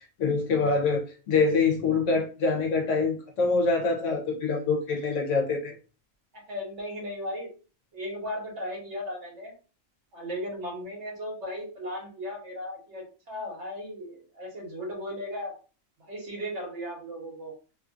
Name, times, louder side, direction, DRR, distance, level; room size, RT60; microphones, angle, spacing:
voice 1, 0.2-5.7, left 4 dB, 70° left, 1 dB, 1.1 m, -25 dB
voice 2, 6.3-7.5 7.9-9.5 10.1-15.5 16.0-17.5, equal, 60° right, -1 dB, 1.4 m, -36 dB
3.1 x 2.3 x 2.5 m, 0.35 s
omnidirectional pair, 1.4 m